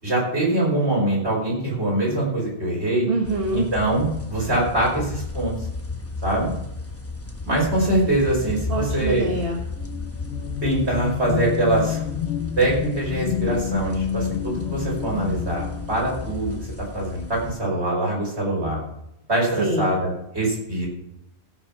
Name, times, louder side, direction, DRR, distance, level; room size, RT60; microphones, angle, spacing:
voice 1, 0.0-3.1 3.5-5.5 6.2-6.5 7.5-9.3 10.6-12.1 12.6-18.8 19.3-20.9, right 1 dB, 85° right, -3 dB, 5.5 m, -23 dB
voice 2, 3.1-3.7 8.7-9.6 19.6-19.9, right 2 dB, 60° right, 0 dB, 1.7 m, -25 dB
sound 1, 3.2-17.5, left 3 dB, 15° left, 1.2 m, -33 dB
sound 2, 9.8-16.4, left 12 dB, 80° left, 1.0 m, -29 dB
15.5 x 6.4 x 5.9 m, 0.82 s
omnidirectional pair, 1.1 m